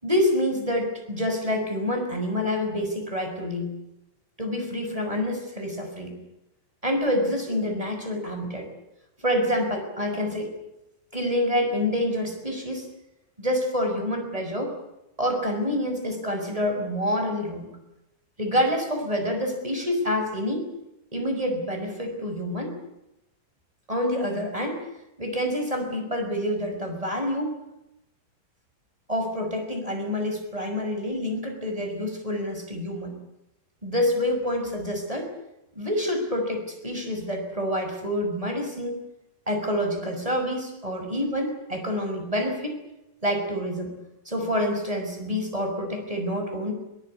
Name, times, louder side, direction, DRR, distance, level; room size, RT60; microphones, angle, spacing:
voice 1, 0.0-3.8 4.4-6.1 6.8-8.7 9.2-10.5 11.1-12.8 13.4-14.7 15.2-17.7 18.4-20.7 21.1-22.8 23.9-24.9 25.2-27.6 29.1-33.1 33.8-35.3 35.8-39.0 39.5-42.8 43.2-43.9 44.3-46.7, left 1 dB, 10° right, 4 dB, 5.6 m, -27 dB
22.0 x 21.0 x 9.7 m, 0.91 s
omnidirectional pair, 3.6 m